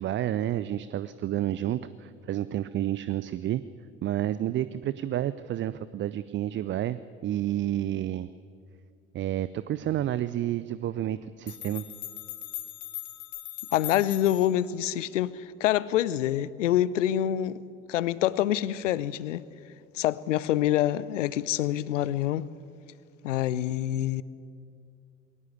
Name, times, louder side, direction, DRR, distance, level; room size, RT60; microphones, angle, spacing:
voice 1, 0.0-3.6 4.0-8.3 9.1-11.8, right 12 dB, 30° right, 0.6 m, -30 dB
sound 1, 11.1-11.2 11.5-14.6, left 13 dB, 45° left, 3.0 m, -39 dB
voice 2, 13.7-17.6 17.9-19.5 19.9-22.5 23.2-24.2, left 12 dB, 75° left, 0.7 m, -26 dB
21.0 x 18.0 x 8.5 m
figure-of-eight pair, 65°, 38 cm